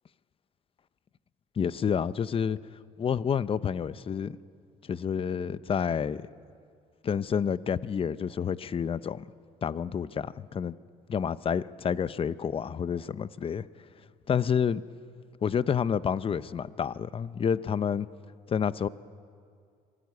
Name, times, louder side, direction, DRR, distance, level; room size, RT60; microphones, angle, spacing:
voice 1, 1.6-2.6 3.0-4.4 4.8-6.2 7.0-9.2 9.6-10.8 11.1-13.7 14.3-14.8 15.4-18.1 18.5-18.9, left 7 dB, 35° left, 16 dB, 0.6 m, -29 dB
25.5 x 18.0 x 9.6 m, 2.3 s
cardioid pair, 110°, 17 cm